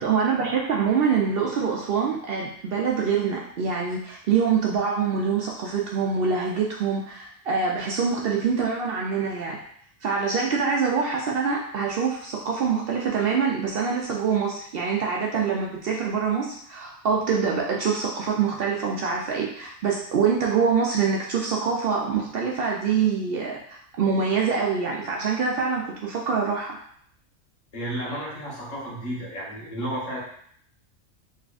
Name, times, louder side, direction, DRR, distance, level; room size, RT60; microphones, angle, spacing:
voice 1, 0.0-9.6 10.0-26.8, right 6 dB, 65° right, -2 dB, 0.6 m, -25 dB
voice 2, 27.7-30.2, equal, 75° left, -6 dB, 1.6 m, -32 dB
3.6 x 3.1 x 2.4 m, 0.63 s
omnidirectional pair, 1.3 m